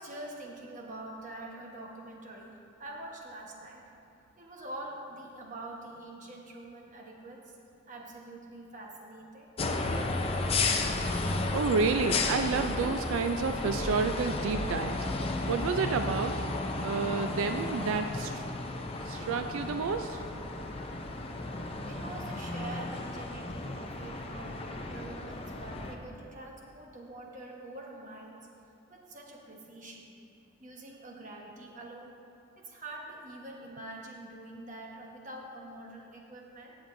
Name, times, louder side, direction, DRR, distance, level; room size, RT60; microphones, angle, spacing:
voice 1, 0.0-3.8 4.4-7.6 7.9-9.5 21.3-24.6 24.9-28.5 28.9-30.1 30.6-32.1 32.6-36.7, right 1 dB, 40° right, -1 dB, 1.2 m, -45 dB
sound 1, 9.6-25.9, left 2 dB, 30° left, 0.5 m, -33 dB
voice 2, 11.5-15.0 15.5-16.4 16.8-18.4 19.0-20.2, right 5 dB, 85° right, 7 dB, 0.4 m, -30 dB
18.5 x 6.9 x 2.6 m, 2.7 s
head